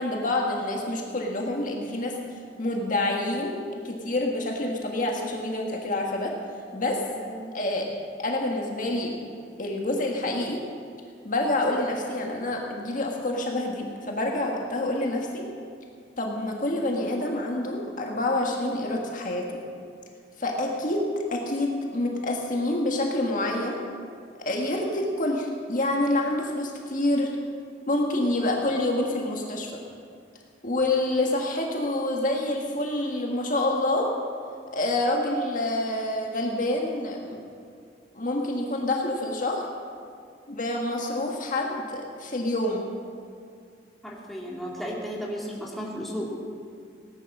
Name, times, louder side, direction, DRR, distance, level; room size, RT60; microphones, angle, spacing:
voice 1, 0.0-2.1 2.6-6.3 6.7-7.0 7.5-7.9 8.2-9.2 9.6-10.6 11.2-15.5 16.2-19.6 20.4-23.8 24.4-27.3 27.9-29.8 30.6-34.1 34.7-37.4 38.1-39.6 40.5-42.9, left 1 dB, 50° left, 0 dB, 1.6 m, -27 dB
voice 2, 7.1-7.5 44.0-46.3, equal, ahead, -4 dB, 2.4 m, -34 dB
18.0 x 10.0 x 6.1 m, 2.2 s
head